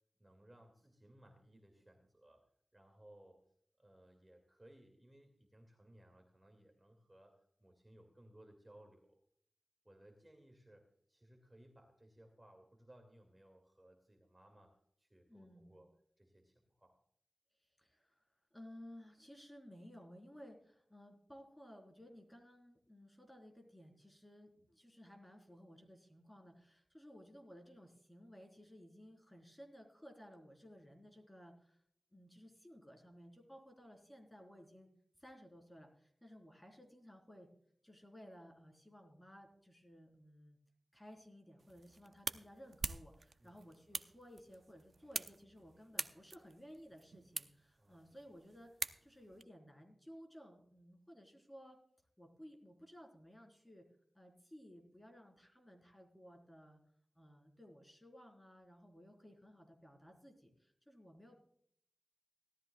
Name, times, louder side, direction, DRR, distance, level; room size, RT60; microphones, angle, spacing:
voice 1, 0.2-2.5 2.7-3.4 3.8-9.2 9.8-15.9 16.2-17.0 43.4-43.6 47.8-48.2, right 1 dB, 20° right, 3 dB, 2.3 m, -63 dB
voice 2, 15.3-15.8 17.8-18.2 18.5-31.8 32.1-34.9 35.2-37.5 37.8-40.6 40.9-48.7 49.0-51.8 52.2-53.8 54.1-56.8 57.1-61.4, equal, 10° left, 2 dB, 3.9 m, -57 dB
sound 1, 41.6-49.4, right 4 dB, 65° right, 0.6 m, -46 dB
17.5 x 13.0 x 2.3 m, 0.66 s
wide cardioid pair, 70°, 0 cm